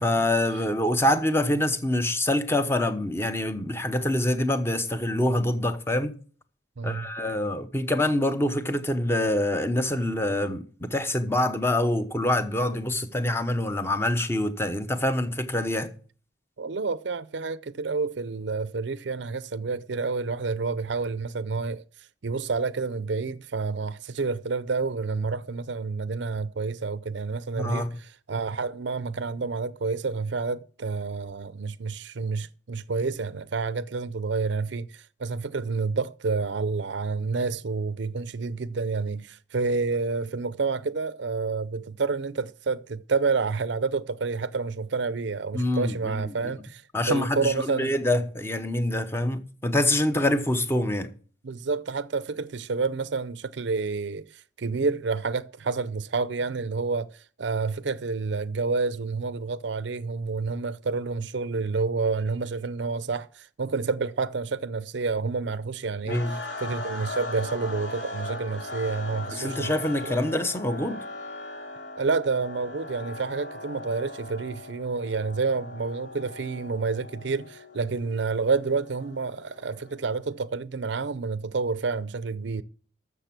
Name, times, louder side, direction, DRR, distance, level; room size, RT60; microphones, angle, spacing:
voice 1, 0.0-6.1 6.8-15.9 27.6-27.9 45.5-46.3 46.9-51.1 66.1-66.4 69.3-71.0, left 1 dB, 15° left, 1.0 m, -25 dB
voice 2, 6.8-7.1 16.6-21.8 22.2-46.8 47.1-48.0 51.4-69.7 70.0-70.2 72.0-82.6, right 4 dB, 70° right, 0.6 m, -29 dB
sound 1, 66.1-80.2, left 2 dB, 70° left, 2.9 m, -39 dB
13.5 x 6.9 x 5.9 m
head